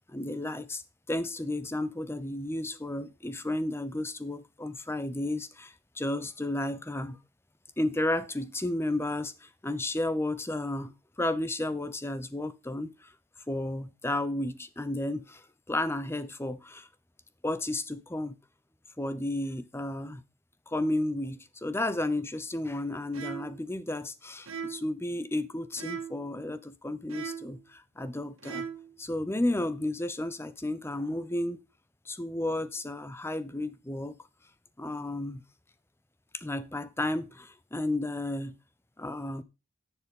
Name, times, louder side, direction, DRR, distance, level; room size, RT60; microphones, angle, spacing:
voice 1, 0.1-0.8 1.1-7.2 7.8-13.1 13.5-16.9 17.4-18.4 19.0-20.2 20.7-28.7 29.0-31.6 32.1-34.1 34.8-35.4 36.3-38.6 39.0-39.4, left 1 dB, 10° left, 0.7 m, -32 dB
sound 1, 23.1-23.6 24.5-24.9 25.7-26.3 27.1-27.6 28.4-28.9, right 6 dB, 80° right, 2.1 m, -39 dB
10.5 x 7.2 x 3.7 m
head